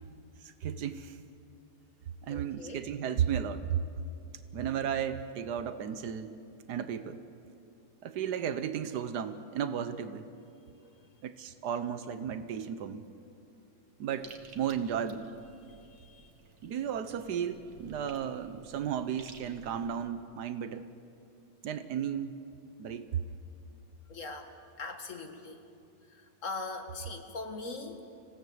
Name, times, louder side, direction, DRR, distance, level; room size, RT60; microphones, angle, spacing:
voice 1, 0.4-1.2 2.2-3.8 4.5-6.4 6.7-7.2 8.0-10.3 11.2-13.0 14.0-15.3 16.6-20.9 21.6-22.3 22.8-23.2, right 8 dB, 80° right, 10 dB, 1.4 m, -34 dB
voice 2, 2.3-2.8 10.8-11.1 14.2-14.3 15.6-16.3 24.1-24.5 24.8-25.6 26.1-28.0, left 3 dB, 50° left, 5 dB, 2.0 m, -42 dB
sound 1, 14.2-20.0, right 5 dB, 65° right, 2.0 m, -54 dB
26.5 x 17.0 x 7.9 m, 2.5 s
omnidirectional pair, 1.7 m